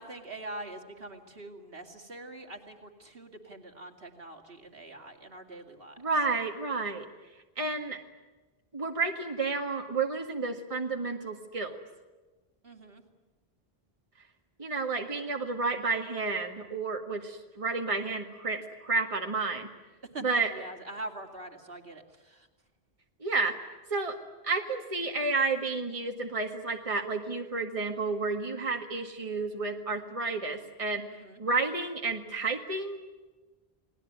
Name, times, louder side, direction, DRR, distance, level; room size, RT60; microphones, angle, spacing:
voice 1, 0.0-6.0 12.6-13.0 20.1-20.2 20.5-22.5 31.1-31.4, right 2 dB, 65° right, 3 dB, 2.8 m, -44 dB
voice 2, 6.0-7.1 7.6-8.0 8.7-11.8 14.6-19.7 20.2-20.5 23.2-23.5 23.9-24.2 24.4-31.0 31.4-33.0, right 3 dB, 35° right, 3 dB, 1.9 m, -31 dB
29.0 x 19.5 x 9.6 m, 1.2 s
omnidirectional pair, 1.0 m